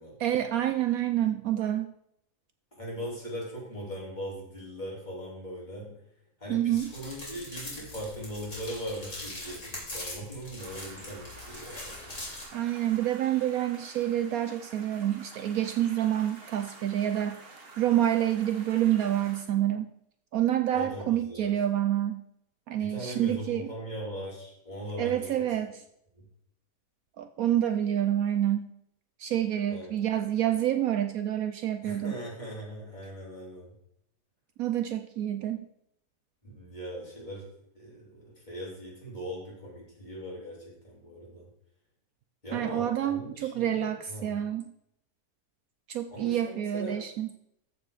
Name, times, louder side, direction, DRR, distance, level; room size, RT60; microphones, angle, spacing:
voice 1, 0.2-1.9 6.5-6.9 12.5-17.4 17.8-19.9 20.3-22.2 22.7-23.7 25.0-25.7 27.2-28.7 29.2-32.2 34.6-35.7 42.5-44.6 45.9-47.3, right 11 dB, 70° right, 8 dB, 1.0 m, -28 dB
voice 2, 2.8-6.0 6.4-12.2 20.7-21.6 22.8-25.5 26.1-26.2 29.7-30.0 31.8-33.7 36.4-37.5 37.7-41.5 42.4-44.4 46.1-47.0, equal, 25° left, -5 dB, 3.4 m, -40 dB
sound 1, 6.8-12.4, left 2 dB, 50° left, 3.3 m, -42 dB
sound 2, 10.6-19.4, right 3 dB, 40° right, 1.4 m, -49 dB
14.0 x 4.6 x 5.0 m, 0.76 s
omnidirectional pair, 1.7 m